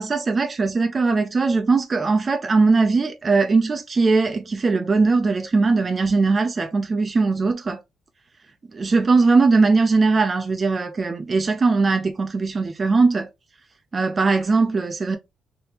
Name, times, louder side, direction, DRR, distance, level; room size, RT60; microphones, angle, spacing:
voice 1, 0.0-7.8 8.7-13.3 13.9-15.2, right 4 dB, 35° right, 0.5 m, -20 dB
3.4 x 2.8 x 2.8 m
cardioid pair, 90°, 0 cm